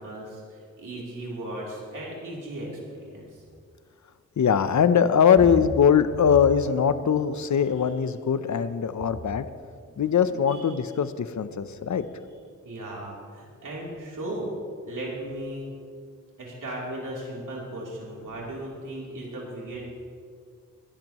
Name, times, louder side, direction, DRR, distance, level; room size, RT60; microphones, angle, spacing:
voice 1, 0.0-3.4 5.4-5.5 9.9-10.0 10.5-10.7 12.6-14.5 14.8-15.7 16.4-19.8, right 1 dB, 85° right, -5 dB, 3.2 m, -36 dB
voice 2, 4.4-9.5 10.0-12.1, left 7 dB, 65° left, 12 dB, 0.7 m, -21 dB
20.0 x 12.0 x 3.0 m, 2.1 s
wide cardioid pair, 95°, 31 cm